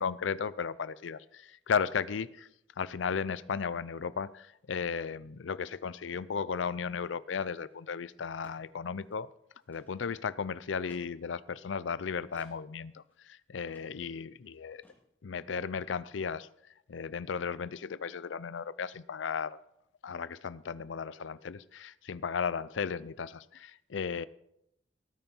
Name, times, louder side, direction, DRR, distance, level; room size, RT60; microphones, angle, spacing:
voice 1, 0.0-2.5 2.8-9.3 9.7-14.8 15.2-16.5 16.9-19.6 20.0-24.3, left 6 dB, 85° left, 18 dB, 0.5 m, -35 dB
sound 1, 7.7-7.8 8.0-8.1 8.4-8.7 9.0-9.2 9.6-10.3 10.9-11.1 12.3-12.5 13.1-13.2 13.7-13.9 14.2-14.3 14.4-14.6 14.8-15.0, left 1 dB, 10° left, 2.7 m, -58 dB
18.0 x 9.2 x 4.5 m, 0.78 s
head